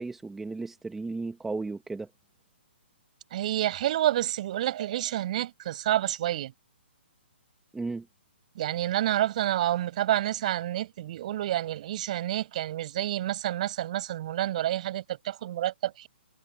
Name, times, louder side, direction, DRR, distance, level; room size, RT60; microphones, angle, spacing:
voice 1, 0.0-2.1 7.7-8.1, right 3 dB, 5° right, 1.4 m, -34 dB
voice 2, 3.3-6.5 8.6-16.1, right 13 dB, 40° right, 7.4 m, -29 dB
hypercardioid pair, 165°, 6 cm